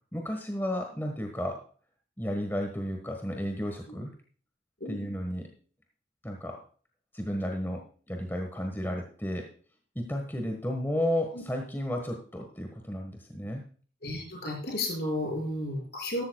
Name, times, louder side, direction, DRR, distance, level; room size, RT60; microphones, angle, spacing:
voice 1, 0.1-1.6 2.2-4.1 4.9-5.4 6.2-6.6 7.1-9.5 9.9-13.6, equal, 10° left, 3 dB, 1.4 m, -33 dB
voice 2, 4.8-5.1 11.3-11.4 14.0-16.2, left 1 dB, 55° left, 0 dB, 6.2 m, -33 dB
14.0 x 12.5 x 2.3 m, 0.41 s
head